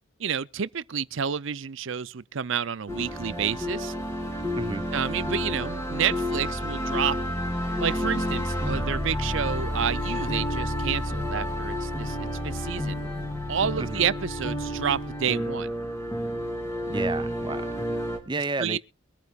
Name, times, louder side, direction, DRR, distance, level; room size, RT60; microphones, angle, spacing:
voice 1, 0.2-3.9 4.9-7.2 7.8-13.0 13.5-15.7 18.6-18.8, right 7 dB, 65° right, 0.6 m, -29 dB
sound 1, 2.9-18.2, equal, 15° left, 3.2 m, -30 dB
voice 2, 16.9-17.6 18.3-18.8, right 3 dB, 20° right, 0.6 m, -31 dB
23.5 x 9.4 x 2.4 m
head